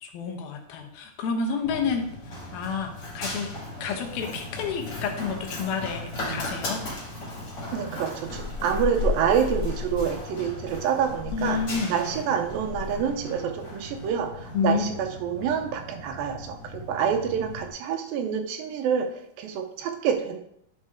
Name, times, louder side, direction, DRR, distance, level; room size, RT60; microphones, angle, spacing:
voice 1, 0.0-2.1 2.5-3.5 3.8-6.8 11.3-11.9 14.5-14.9, left 5 dB, 80° left, 4 dB, 2.8 m, -29 dB
Run, 1.6-17.7, left 2 dB, 35° left, 1.5 m, -35 dB
voice 2, 7.7-11.6 11.9-20.4, right 7 dB, 80° right, 6 dB, 2.4 m, -27 dB
11.0 x 4.5 x 3.5 m, 0.71 s
omnidirectional pair, 4.3 m